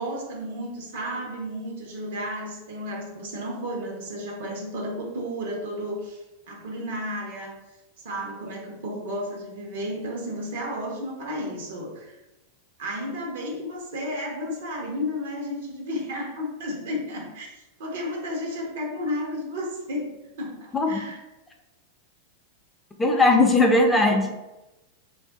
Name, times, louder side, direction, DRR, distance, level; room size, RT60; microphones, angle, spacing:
voice 1, 0.0-7.5 8.0-12.2 12.8-21.2, equal, 75° right, -1 dB, 1.0 m, -33 dB
voice 2, 23.0-24.4, left 2 dB, 15° left, 2 dB, 0.5 m, -19 dB
2.6 x 2.5 x 3.5 m, 1.0 s
hypercardioid pair, 115°, 0 cm